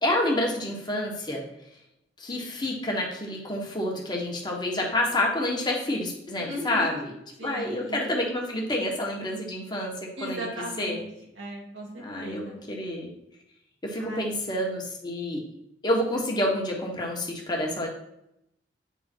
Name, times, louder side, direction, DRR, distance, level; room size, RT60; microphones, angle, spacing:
voice 1, 0.0-1.4 2.2-7.1 7.4-11.0 12.0-13.1 13.8-15.4 15.8-17.9, left 1 dB, 25° left, -1 dB, 1.3 m, -28 dB
voice 2, 6.4-7.0 7.4-8.1 10.2-11.1 11.4-12.6 14.0-14.4, equal, 80° right, -4 dB, 2.5 m, -37 dB
9.1 x 3.6 x 4.5 m, 0.81 s
head